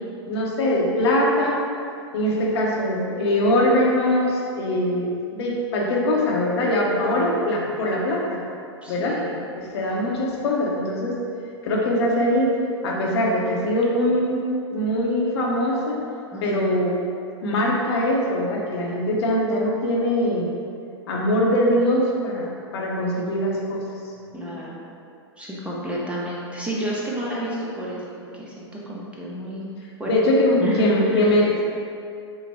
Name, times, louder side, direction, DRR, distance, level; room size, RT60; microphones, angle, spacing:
voice 1, 0.3-1.6 2.1-8.4 8.9-9.2 9.5-11.1 11.6-12.5 12.8-14.4 14.7-16.0 16.4-16.9 17.4-20.5 21.1-23.9 30.1-31.6, left 1 dB, 70° left, -2 dB, 0.8 m, -22 dB
voice 2, 6.9-7.4 8.8-9.3 16.3-16.8 24.3-24.8 25.4-29.7 30.0-30.1 30.6-31.3, right 1 dB, 10° right, -5 dB, 0.7 m, -30 dB
5.3 x 2.1 x 3.4 m, 2.5 s
hypercardioid pair, 110°, 14 cm